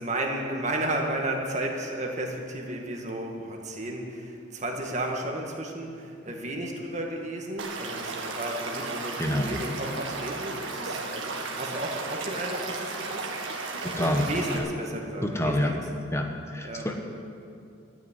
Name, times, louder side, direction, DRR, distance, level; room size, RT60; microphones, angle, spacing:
voice 1, 0.0-13.3 13.9-15.8 16.6-16.9, right 1 dB, 35° right, 1 dB, 1.9 m, -33 dB
Stream / Liquid, 7.6-14.6, right 3 dB, 70° right, 1.9 m, -34 dB
voice 2, 9.2-9.6 12.9-13.0 13.8-14.3 14.5-14.6 15.2-15.7 16.1-17.0, left 1 dB, 15° left, 3 dB, 1.0 m, -28 dB
13.0 x 9.5 x 9.7 m, 2.5 s
head